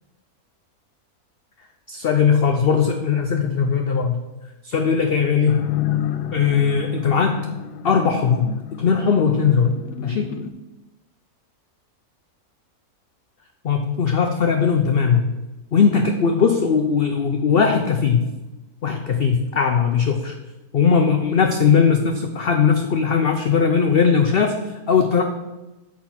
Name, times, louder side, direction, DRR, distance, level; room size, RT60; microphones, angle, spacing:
voice 1, 1.9-4.2 4.6-5.7 6.3-7.4 7.8-9.7 10.0-10.3 13.6-15.3 15.7-18.3 18.8-20.3 20.7-25.2, left 6 dB, 60° left, 5 dB, 0.6 m, -19 dB
sound 1, 5.5-10.5, left 11 dB, 90° left, 1.1 m, -29 dB
7.6 x 4.3 x 5.8 m, 1.1 s
omnidirectional pair, 1.6 m